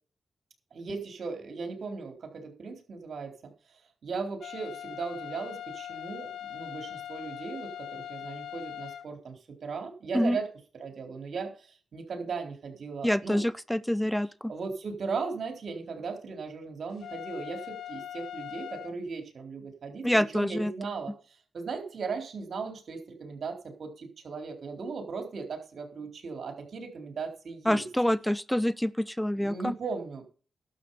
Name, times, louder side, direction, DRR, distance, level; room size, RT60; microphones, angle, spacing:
voice 1, 0.7-3.3 4.0-10.5 10.7-13.5 14.0-14.1 14.5-27.9 29.3-30.2, right 4 dB, 70° right, 5 dB, 3.8 m, -37 dB
sound 1, 4.4-9.1 17.0-18.9, left 11 dB, 85° left, 0.9 m, -41 dB
voice 2, 13.0-14.5 20.0-20.7 27.7-29.7, left 1 dB, 5° left, 16 dB, 0.7 m, -26 dB
12.0 x 7.7 x 5.6 m, 0.38 s
cardioid pair, 50°, 0 cm